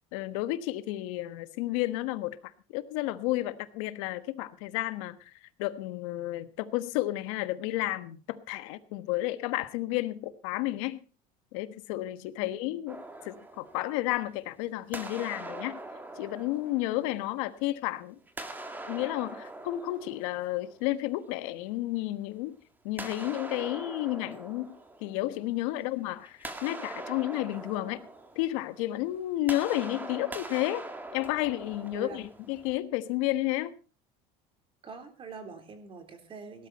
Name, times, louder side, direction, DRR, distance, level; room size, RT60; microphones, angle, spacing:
voice 1, 0.1-5.3 5.6-11.0 11.5-13.0 13.2-15.8 16.2-18.1 18.9-22.5 22.8-24.7 25.0-28.1 28.3-30.8 31.1-33.7, left 16 dB, 90° left, 12 dB, 1.3 m, -32 dB
voice 2, 12.4-12.8 25.7-25.9 31.9-32.2 34.8-36.7, right 4 dB, 35° right, 7 dB, 3.7 m, -44 dB
sound 1, 12.9-14.5 14.9-17.7 18.3-21.2 23.0-25.7 26.1-32.8, right 2 dB, 10° right, 1.9 m, -43 dB
18.0 x 12.5 x 4.2 m, 0.35 s
cardioid pair, 140°, 16 cm